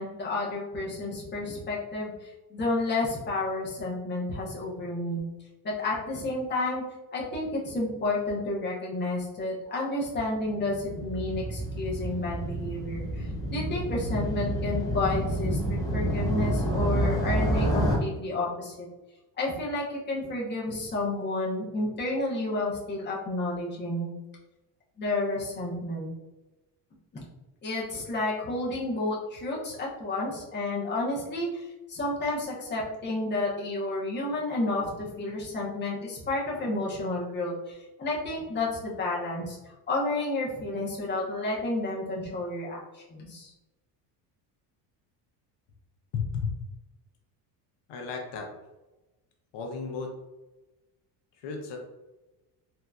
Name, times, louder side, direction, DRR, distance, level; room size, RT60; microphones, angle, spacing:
voice 1, 0.0-5.2 5.6-6.8 7.1-18.9 19.4-24.1 25.0-26.1 27.1-27.2 27.6-31.6 31.9-39.6 39.9-43.5, left 2 dB, 25° left, -5 dB, 1.0 m, -31 dB
Motorcycle, 10.4-18.0, right 1 dB, 10° left, 0.5 m, -29 dB
voice 2, 46.1-46.5 47.9-48.5 49.5-50.1 51.3-51.8, left 5 dB, 80° left, 2 dB, 0.8 m, -33 dB
3.7 x 2.9 x 2.3 m, 1.1 s
cardioid pair, 145°, 43 cm